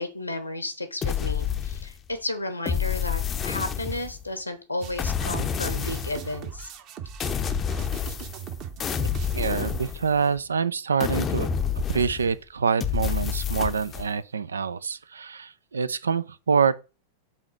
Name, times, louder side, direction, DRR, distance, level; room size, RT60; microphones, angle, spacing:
voice 1, 0.0-6.7, left 2 dB, 85° left, 1.2 m, -33 dB
sound 1, 1.0-2.1 2.6-4.3 5.0-6.3 7.2-8.5 8.8-10.4 11.0-12.4 12.8-14.1, left 7 dB, 25° left, 0.6 m, -28 dB
sound 2, 4.8-9.9, right 7 dB, 40° right, 1.1 m, -40 dB
voice 2, 9.3-11.5 11.9-16.7, right 6 dB, 70° right, 0.5 m, -26 dB
5.7 x 4.1 x 6.2 m
figure-of-eight pair, 90°, 0 cm